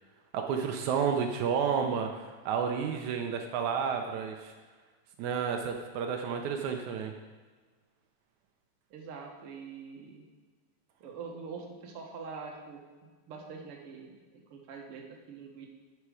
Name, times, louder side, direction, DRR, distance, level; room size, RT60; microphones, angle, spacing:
voice 1, 0.3-4.5 5.2-7.1, right 6 dB, 80° right, 4 dB, 2.1 m, -31 dB
voice 2, 8.9-10.2 11.0-15.7, right 5 dB, 55° right, 1 dB, 1.9 m, -44 dB
9.7 x 6.6 x 4.9 m, 1.4 s
omnidirectional pair, 3.4 m